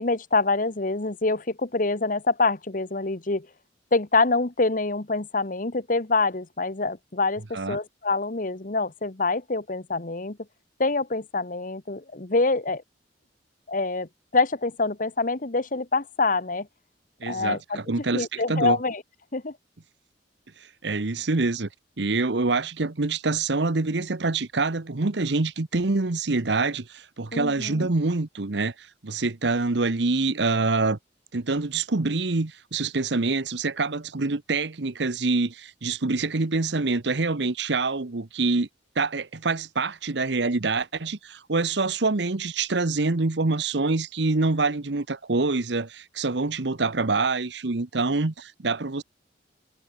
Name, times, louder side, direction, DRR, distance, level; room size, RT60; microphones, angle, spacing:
voice 1, 0.0-3.5 3.9-10.4 10.8-12.8 13.7-16.7 17.2-17.8 18.1-19.0 19.3-19.5 27.3-27.9, left 3 dB, 45° left, 1.3 m, -26 dB
voice 2, 17.2-18.8 20.8-21.7 22.0-28.7 29.0-31.0 31.3-38.7 39.0-49.0, right 3 dB, 65° right, 1.0 m, -26 dB
head